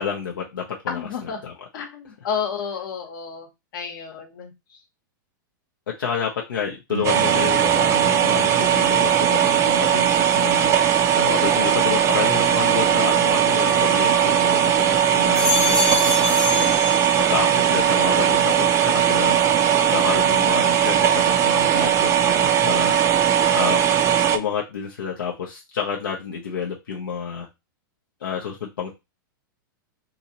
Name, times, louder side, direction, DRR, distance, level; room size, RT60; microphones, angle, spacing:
voice 1, 0.0-1.5 6.0-14.7 15.1-23.0 23.5-24.0 24.3-27.5 28.2-28.9, left 7 dB, 80° left, -2 dB, 0.6 m, -29 dB
voice 2, 0.9-1.4 1.7-4.8 14.7-15.6 19.1-19.8 23.3-23.8, left 7 dB, 65° left, 5 dB, 1.0 m, -33 dB
sound 1, 6.9-10.5, right 6 dB, 70° right, 0.8 m, -37 dB
sound 2, 7.0-24.4, right 9 dB, 25° right, 0.4 m, -19 dB
sound 3, 13.5-14.7 15.1-17.6 17.9-18.5, left 3 dB, 10° left, 0.6 m, -27 dB
2.8 x 2.6 x 2.8 m, 0.23 s
hypercardioid pair, 115°, 11 cm